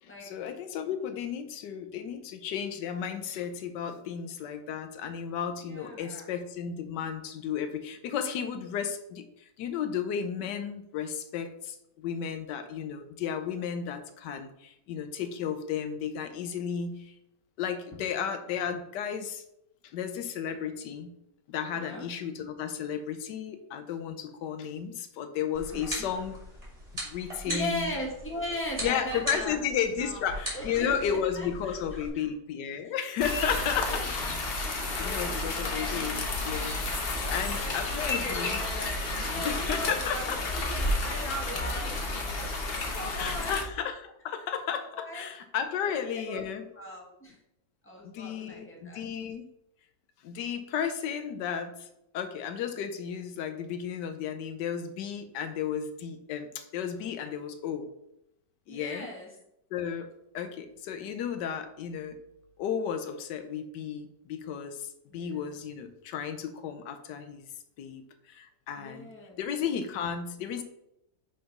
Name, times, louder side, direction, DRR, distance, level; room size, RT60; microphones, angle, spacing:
voice 1, 0.0-17.1 17.6-19.4 19.8-21.2 21.5-26.4 27.0-27.9 28.8-34.5 35.0-36.8 37.3-38.6 39.4-40.4 43.1-46.7 48.0-49.5 50.2-51.9 52.1-57.9 58.7-59.1 59.7-60.1 60.3-62.2 62.6-67.4 67.8-69.1 69.4-70.6, left 8 dB, 85° left, 8 dB, 1.3 m, -33 dB
voice 2, 5.6-6.3 21.7-22.0 25.7-26.1 27.4-29.6 30.0-30.3 30.5-32.3 33.4-34.0 34.8-36.3 37.2-42.2 42.5-43.6 44.9-45.2 45.8-47.4 47.8-49.0 57.2-57.3 58.7-59.3 65.1-65.6 68.8-69.4, left 1 dB, 10° left, -2 dB, 1.3 m, -39 dB
sound 1, 25.5-32.1, equal, 20° right, 2.3 m, -39 dB
sound 2, 33.2-43.6, left 2 dB, 45° left, 0.9 m, -31 dB
5.8 x 4.0 x 5.1 m, 0.82 s
omnidirectional pair, 1.8 m